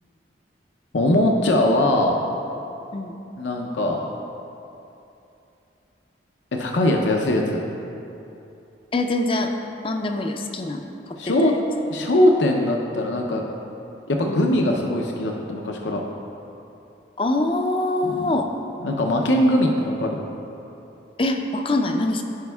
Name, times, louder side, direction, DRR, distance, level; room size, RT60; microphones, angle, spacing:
voice 1, 0.9-2.2 3.4-4.1 6.5-7.7 11.2-11.5 11.9-13.6 14.1-16.0 18.0-18.4 18.8-20.1, left 1 dB, 75° left, 1 dB, 0.6 m, -21 dB
voice 2, 8.9-9.5 9.8-11.5 14.2-14.4 17.2-18.5 21.2-22.2, left 2 dB, 30° left, 4 dB, 0.4 m, -24 dB
15.0 x 5.1 x 2.3 m, 2.8 s
head